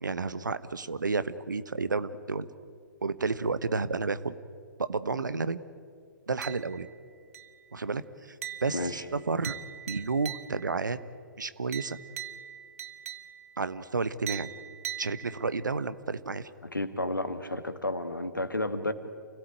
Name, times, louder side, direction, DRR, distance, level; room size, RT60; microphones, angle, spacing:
voice 1, 0.0-2.5 3.0-4.3 4.9-5.6 6.3-6.9 7.7-8.3 8.6-9.5 9.9-11.0 11.4-12.0 13.6-14.5 15.0-16.5, right 4 dB, 75° right, 14 dB, 1.1 m, -31 dB
sound 1, 6.4-7.0 7.3-7.8 8.4-10.8 11.7-13.6 14.3-15.7, right 10 dB, 50° right, 1.3 m, -41 dB
voice 2, 8.7-9.0 16.6-18.9, left 1 dB, 85° left, 10 dB, 1.9 m, -31 dB
28.5 x 17.0 x 9.0 m, 2.1 s
figure-of-eight pair, 115°, 10 cm